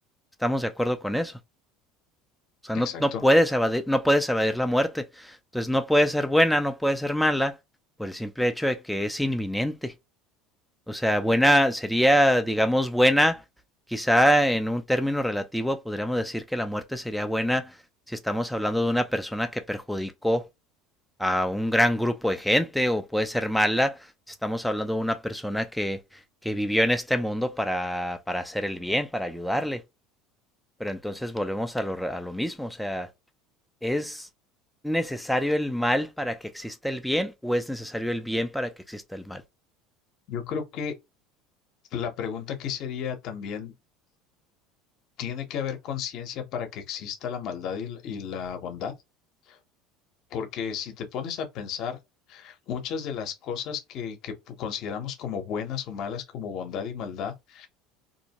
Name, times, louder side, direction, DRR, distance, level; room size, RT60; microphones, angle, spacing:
voice 1, 0.4-1.3 2.6-7.6 8.0-9.9 10.9-13.4 13.9-17.7 18.1-20.4 21.2-24.0 24.3-26.0 26.4-29.8 30.8-33.1 33.8-34.3 34.8-39.4, equal, ahead, 0.4 m, -25 dB
voice 2, 2.7-3.2 40.3-40.9 41.9-43.7 45.2-48.9 49.5-49.6 50.3-52.0 52.3-57.7, left 7 dB, 55° left, 0.8 m, -33 dB
2.6 x 2.1 x 2.8 m
supercardioid pair, 120°, 0 cm